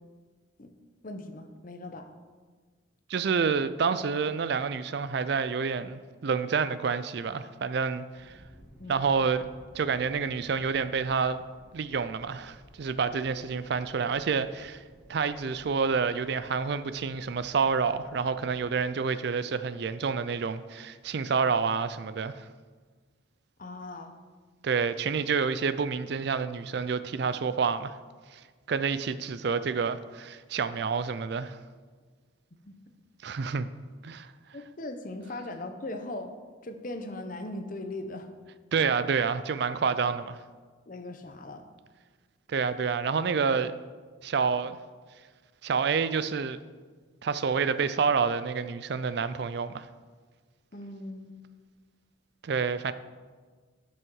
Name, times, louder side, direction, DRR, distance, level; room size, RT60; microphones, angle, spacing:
voice 1, 1.0-2.1 8.8-9.1 23.6-24.1 32.7-32.8 34.5-36.3 36.6-38.3 40.9-41.6 50.7-51.3, left 2 dB, 45° left, 0.8 m, -39 dB
voice 2, 3.1-8.4 8.9-9.4 9.7-11.4 11.7-14.8 15.1-22.5 24.6-27.9 28.3-28.4 28.7-31.6 33.2-33.7 34.0-34.3 38.7-40.4 42.5-43.7 44.2-44.8 45.6-46.6 47.2-49.9 52.4-52.9, right 5 dB, 55° right, 0.4 m, -28 dB
sound 1, 8.2-18.8, equal, 5° right, 2.5 m, -55 dB
12.5 x 6.2 x 4.7 m
head